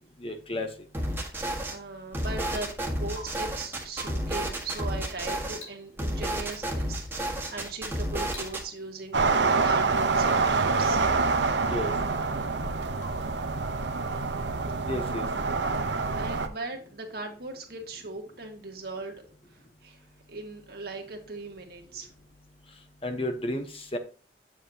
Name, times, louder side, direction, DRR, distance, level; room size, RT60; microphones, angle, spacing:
voice 1, 0.2-0.7 11.7-11.9 14.8-15.3 23.0-24.0, left 1 dB, 30° left, 6 dB, 1.1 m, -32 dB
sound 1, 0.9-1.7 2.1-5.6 6.0-8.6, right 1 dB, 10° right, 1.6 m, -31 dB
voice 2, 1.3-9.2 9.6-11.0 16.1-19.2 19.5-22.1, right 3 dB, 60° right, 2 dB, 1.9 m, -39 dB
Rain / Water tap faucet / Drip, 2.2-2.6 3.1-3.6 3.9-4.3 4.7-5.2 5.5-5.9 6.5-6.7 7.4-7.7 7.9-8.0 8.3-8.8 9.2-9.6 10.2-10.5 13.0-13.4 15.3-15.4, right 1 dB, 85° left, 3.3 m, -47 dB
sound 2, 9.1-16.5, right 4 dB, 80° right, 0.9 m, -26 dB
8.6 x 7.4 x 2.9 m, 0.37 s
head